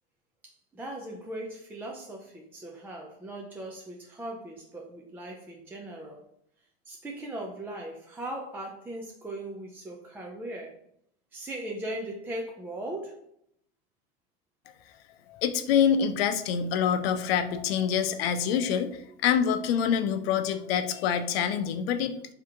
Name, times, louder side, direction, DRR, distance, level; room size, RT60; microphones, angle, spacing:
voice 1, 0.4-6.2 6.9-10.8 11.3-13.2, right 1 dB, 5° right, 0 dB, 0.3 m, -39 dB
voice 2, 15.3-22.3, left 8 dB, 70° left, 9 dB, 0.6 m, -26 dB
3.5 x 2.8 x 3.6 m, 0.71 s
hypercardioid pair, 115°, 32 cm